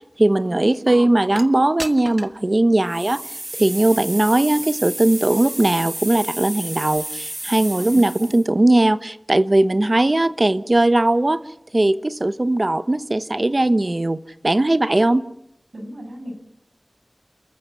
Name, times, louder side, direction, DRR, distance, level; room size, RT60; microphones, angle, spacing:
voice 1, 0.2-11.4 11.7-15.2, right 1 dB, 45° right, 13 dB, 1.0 m, -19 dB
sound 1, 1.4-1.5 1.8-2.4 2.9-8.5, right 1 dB, 30° right, 1.4 m, -32 dB
voice 2, 7.5-8.0 15.7-16.3, equal, 80° right, 4 dB, 6.5 m, -37 dB
29.5 x 14.0 x 8.5 m, 0.82 s
wide cardioid pair, 50°, 0 cm